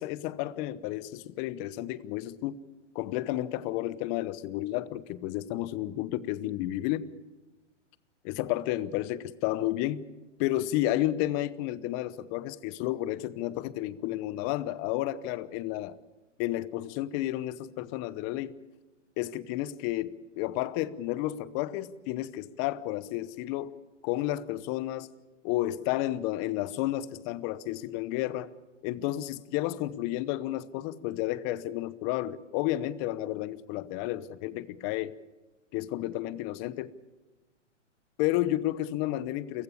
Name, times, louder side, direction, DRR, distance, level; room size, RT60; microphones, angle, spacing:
voice 1, 0.0-2.6 2.9-7.1 8.2-10.1 10.4-16.0 16.4-18.6 19.2-23.8 24.0-25.1 25.4-28.5 28.8-35.2 35.7-36.9 38.2-39.6, left 15 dB, 30° left, 18 dB, 0.9 m, -31 dB
29.0 x 16.0 x 8.5 m, 1.1 s
hypercardioid pair, 130°, 37 cm